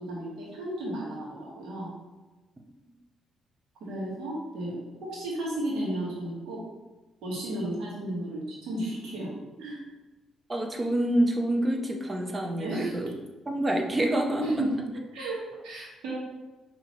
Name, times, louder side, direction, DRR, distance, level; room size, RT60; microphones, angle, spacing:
voice 1, 0.0-1.9 3.8-6.6 7.2-9.3 9.6-9.8 12.6-13.0 14.4-14.8 15.1-16.1, right 1 dB, 85° right, -5 dB, 1.4 m, -33 dB
voice 2, 10.5-13.1 13.5-14.4, right 1 dB, 25° right, 3 dB, 0.7 m, -27 dB
5.5 x 2.9 x 3.0 m, 1.2 s
cardioid pair, 90°, 0 cm